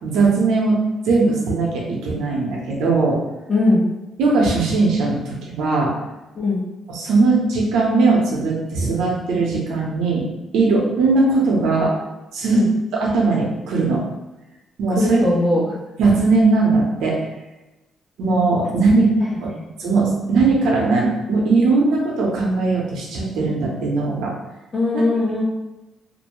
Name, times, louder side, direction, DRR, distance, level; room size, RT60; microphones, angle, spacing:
voice 1, 0.0-0.8 1.1-3.2 4.2-5.9 6.9-10.3 10.5-11.9 12.3-12.6 12.9-14.0 14.8-15.2 16.0-17.2 18.2-19.1 19.4-19.5 19.8-24.3, right 3 dB, 85° right, -2 dB, 0.7 m, -19 dB
voice 2, 3.5-3.8 6.3-6.6 12.5-12.7 14.9-15.7 19.0-19.7 24.7-25.4, left 2 dB, 40° left, -4 dB, 0.9 m, -20 dB
2.6 x 2.1 x 3.0 m, 1.0 s
cardioid pair, 90°, 0 cm